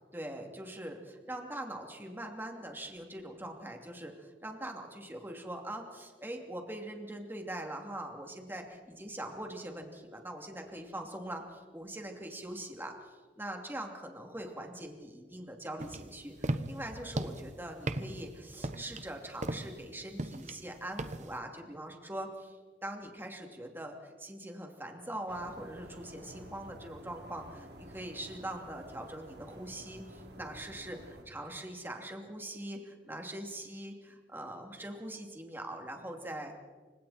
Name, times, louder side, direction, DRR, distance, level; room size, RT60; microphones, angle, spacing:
voice 1, 0.1-12.9 13.4-22.6 22.8-36.5, right 1 dB, 10° right, 2 dB, 2.8 m, -42 dB
sound 1, 15.8-21.4, right 1 dB, 40° right, 1.1 m, -38 dB
sound 2, 25.3-31.2, right 1 dB, 60° right, 3.4 m, -51 dB
29.0 x 26.0 x 4.4 m, 1.4 s
head